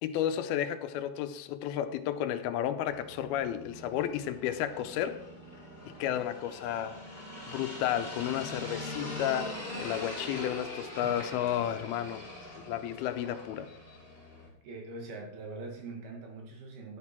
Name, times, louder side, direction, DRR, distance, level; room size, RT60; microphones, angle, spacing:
voice 1, 0.0-5.2 6.0-7.0 7.5-12.2 12.6-13.7, left 11 dB, 85° left, 2.5 m, -32 dB
sound 1, 2.9-14.5, left 1 dB, 5° right, 5.0 m, -42 dB
voice 2, 14.6-17.0, right 3 dB, 75° right, 4.0 m, -43 dB
11.5 x 9.6 x 4.4 m
omnidirectional pair, 4.5 m